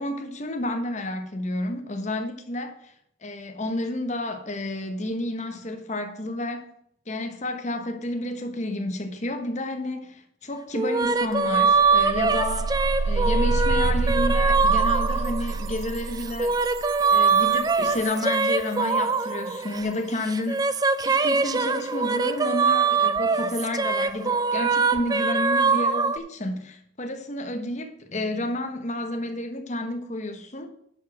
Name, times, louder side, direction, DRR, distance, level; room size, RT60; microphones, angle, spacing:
voice 1, 0.0-2.9 3.2-6.7 7.1-12.8 13.0-16.5 17.1-20.6 21.0-30.7, left 1 dB, 35° left, 1.0 m, -30 dB
sound 1, 10.7-15.7 16.2-19.9 20.3-26.2, right 4 dB, 20° right, 0.3 m, -23 dB
sound 2, 11.0-11.1 11.4-18.2, right 3 dB, 80° right, 0.5 m, -27 dB
10.5 x 4.9 x 6.0 m
head